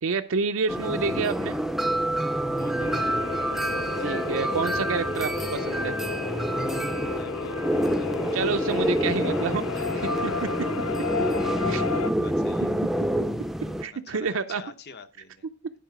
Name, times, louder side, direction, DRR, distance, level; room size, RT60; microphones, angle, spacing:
voice 1, 0.0-1.6 4.0-6.0 8.3-10.3 11.7-11.8 13.8-14.6, right 5 dB, 70° right, 0.5 m, -29 dB
sound 1, 0.7-13.8, right 1 dB, ahead, 0.5 m, -27 dB
voice 2, 2.6-3.2 7.1-8.9 10.8-11.6 12.0-12.7 13.9-15.4, left 4 dB, 50° left, 0.9 m, -47 dB
sound 2, 2.8-12.1, left 7 dB, 80° left, 0.4 m, -33 dB
11.0 x 4.8 x 4.8 m
head